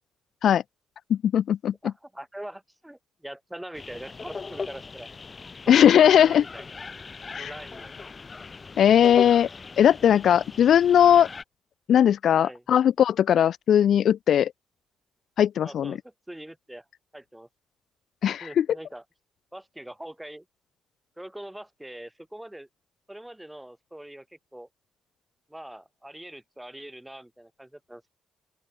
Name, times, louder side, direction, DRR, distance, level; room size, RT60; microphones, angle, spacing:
voice 1, 1.1-1.7 5.7-6.4 7.3-7.5 8.8-9.5 9.8-11.3 11.9-14.5 15.4-16.0 18.2-18.7, left 9 dB, 65° left, 0.4 m, -19 dB
voice 2, 1.8-5.1 5.7-6.7 7.3-7.9 12.4-12.6 15.6-16.0 16.3-16.8 17.1-17.5 18.4-19.0 19.5-20.4 21.2-22.7 23.1-24.2 24.5-24.7 25.5-28.1, right 1 dB, 5° right, 5.2 m, -42 dB
sound 1, 3.7-11.4, left 4 dB, 30° left, 5.2 m, -39 dB
open air
cardioid pair, 90°, 0 cm